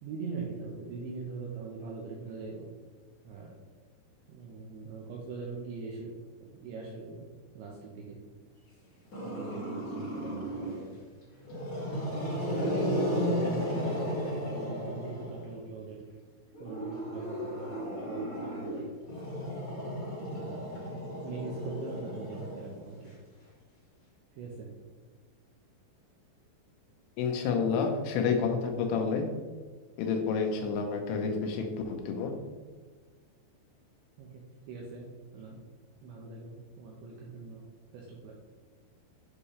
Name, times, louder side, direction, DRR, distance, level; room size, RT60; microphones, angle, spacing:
voice 1, 0.0-2.7 3.2-3.5 4.3-6.1 6.4-7.3 7.5-8.2 9.2-11.0 12.5-14.1 14.5-16.0 16.6-18.9 20.4-20.7 21.2-23.1 24.4-24.7 34.2-34.4 34.7-35.1 35.3-35.6 36.0-37.6 37.9-38.3, right 4 dB, 75° right, -2 dB, 3.0 m, -41 dB
Growling, 9.1-10.9 11.4-15.6 16.5-23.1, equal, 50° left, 1.0 m, -34 dB
voice 2, 27.2-29.3 30.0-32.3, left 5 dB, 80° left, 4 dB, 3.4 m, -29 dB
9.8 x 6.1 x 3.2 m, 1.4 s
omnidirectional pair, 5.7 m